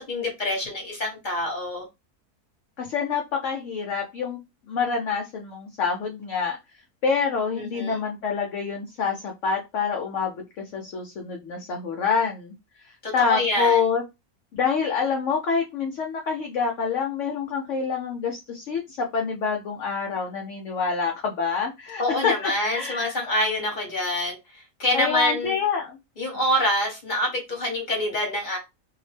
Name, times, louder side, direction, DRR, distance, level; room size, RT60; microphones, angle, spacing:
voice 1, 0.0-1.8 7.5-8.0 13.0-13.8 22.0-25.6 26.2-28.6, left 1 dB, 35° left, 1.0 m, -26 dB
voice 2, 2.8-4.4 4.7-6.6 7.0-10.3 10.7-12.5 13.1-14.0 14.5-23.1 24.9-26.0, left 5 dB, 70° left, 0.7 m, -26 dB
2.8 x 2.0 x 3.1 m
omnidirectional pair, 1.6 m